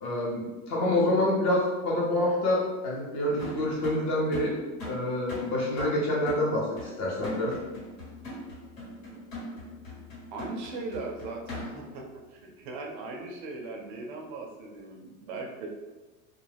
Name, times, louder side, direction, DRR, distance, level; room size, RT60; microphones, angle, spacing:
voice 1, 0.0-4.6 4.8-7.5, left 1 dB, 40° left, -3 dB, 0.8 m, -27 dB
sound 1, 3.4-12.0, left 1 dB, 70° left, 1.4 m, -41 dB
voice 2, 10.3-12.0 12.3-15.7, right 3 dB, 35° right, 0 dB, 0.4 m, -39 dB
2.3 x 2.2 x 3.2 m, 1.2 s
supercardioid pair, 155°, 43 cm